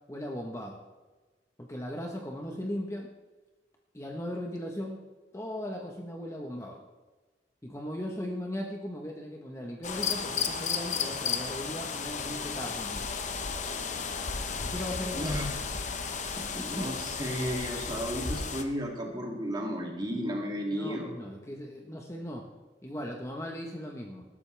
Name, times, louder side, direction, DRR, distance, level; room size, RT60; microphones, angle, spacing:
voice 1, 0.1-0.8 1.6-3.1 3.9-5.0 5.3-6.8 7.6-13.1 14.6-15.4 16.4-16.9 20.7-22.5 22.8-24.2, equal, 15° left, 1 dB, 1.2 m, -38 dB
sound 1, 9.8-18.6, left 5 dB, 40° left, 1.0 m, -33 dB
voice 2, 15.1-15.5 16.5-21.1, equal, 25° right, 0 dB, 2.7 m, -33 dB
20.0 x 12.0 x 3.4 m, 1.3 s
head